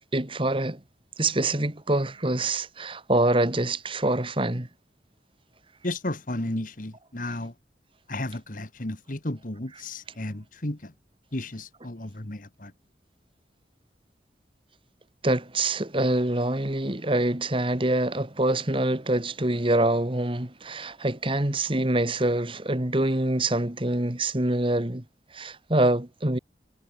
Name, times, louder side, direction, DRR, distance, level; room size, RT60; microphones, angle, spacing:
voice 1, 0.1-0.8 1.2-4.7 15.2-25.0 25.3-26.4, right 1 dB, 30° right, 1.9 m, -25 dB
voice 2, 5.8-7.5 8.1-10.9 11.3-12.7, left 1 dB, 45° left, 2.0 m, -33 dB
head